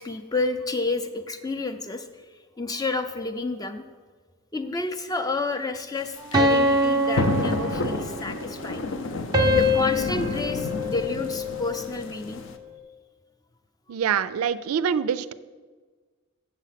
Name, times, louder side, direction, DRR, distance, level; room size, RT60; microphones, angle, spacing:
voice 1, 0.0-3.9 4.5-9.0 9.5-12.4, left 3 dB, 15° left, 8 dB, 0.4 m, -30 dB
sound 1, 6.0-12.6, left 2 dB, 60° left, 0.6 m, -30 dB
sound 2, 6.3-8.3 9.3-11.7, left 1 dB, 20° right, 0.8 m, -24 dB
voice 2, 13.9-15.3, right 7 dB, 85° right, 15 dB, 0.3 m, -25 dB
7.3 x 7.2 x 5.8 m, 1.4 s
head